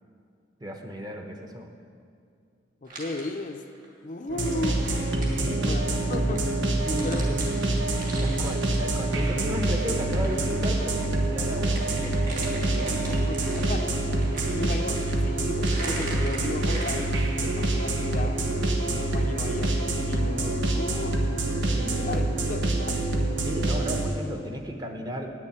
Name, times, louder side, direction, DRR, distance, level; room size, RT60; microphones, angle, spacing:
voice 1, 0.6-1.7 5.3-5.7 6.8-7.4 8.2-12.2 12.7-13.1 21.7-22.0 23.4-25.3, equal, 20° right, 4 dB, 0.9 m, -35 dB
voice 2, 2.8-3.6 4.0-4.8 5.6-6.7 7.0-7.3 13.0-13.9 14.5-18.4 18.9-21.2 22.0-23.3, left 2 dB, 45° left, 5 dB, 0.5 m, -35 dB
sound 1, 2.9-3.9 4.3-10.7 11.0-17.1, right 2 dB, 45° right, 2.4 m, -41 dB
sound 2, 4.3-24.0, right 2 dB, 90° right, 1.3 m, -26 dB
9.8 x 6.8 x 8.5 m, 2.3 s
head